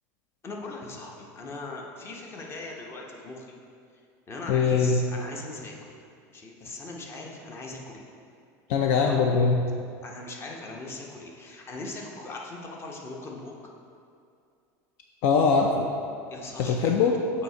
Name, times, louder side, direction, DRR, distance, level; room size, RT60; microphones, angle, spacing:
voice 1, 0.4-3.6 4.3-5.9 6.3-8.0 9.1-9.2 10.0-13.5 16.3-17.0, left 2 dB, 30° left, 0 dB, 0.8 m, -40 dB
voice 2, 4.5-5.0 8.7-9.6 15.2-15.9 16.6-17.1, left 5 dB, 60° left, 2 dB, 0.4 m, -22 dB
7.7 x 2.8 x 4.4 m, 2.4 s
supercardioid pair, 120°, 9 cm